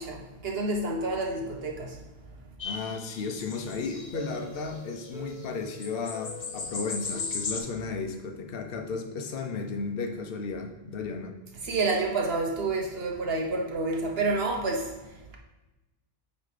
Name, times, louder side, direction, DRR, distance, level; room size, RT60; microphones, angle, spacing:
voice 1, 0.0-2.0 11.6-15.4, right 3 dB, 70° right, 1 dB, 1.3 m, -29 dB
voice 2, 2.6-11.3, left 4 dB, 65° left, 4 dB, 1.0 m, -34 dB
sound 1, 2.6-5.1 5.4-5.5 5.7-7.6, left 4 dB, 40° left, 0.6 m, -37 dB
sound 2, 4.1-8.8, equal, 5° right, 0.9 m, -46 dB
8.3 x 3.1 x 4.9 m, 1.0 s
omnidirectional pair, 1.1 m